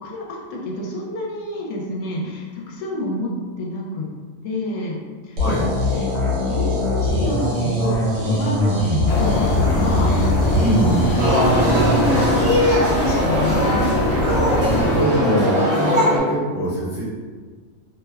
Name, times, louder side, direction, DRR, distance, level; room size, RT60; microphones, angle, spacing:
voice 1, 0.0-4.1 4.4-5.0 5.2-10.7 11.2-12.3 12.8-14.0, left 1 dB, 85° left, -3 dB, 1.0 m, -28 dB
sound 1, 5.4-12.2, left 2 dB, 70° right, 1.0 m, -22 dB
sound 2, 9.1-15.0, equal, 65° left, 0.6 m, -22 dB
voice 2, 10.6-11.1 14.4-17.0, right 1 dB, 5° right, -12 dB, 0.7 m, -23 dB
sound 3, 11.2-16.2, left 1 dB, 45° right, 0.5 m, -20 dB
2.7 x 2.1 x 2.2 m, 1.5 s
omnidirectional pair, 1.5 m